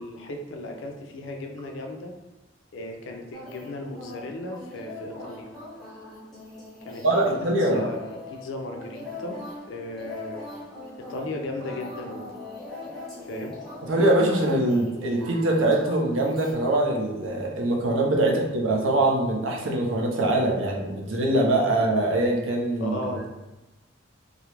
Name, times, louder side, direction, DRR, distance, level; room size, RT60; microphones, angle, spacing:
voice 1, 0.0-2.1 2.7-5.5 6.9-9.4 9.7-10.4 11.0-12.5 13.2-13.6 18.2-18.3 22.8-23.3, left 1 dB, 70° left, 2 dB, 0.4 m, -36 dB
sound 1, 3.3-16.5, left 2 dB, ahead, 0.5 m, -41 dB
voice 2, 7.0-7.9 13.9-23.0, right 1 dB, 80° right, 0 dB, 0.5 m, -23 dB
2.3 x 2.0 x 2.9 m, 1.1 s
head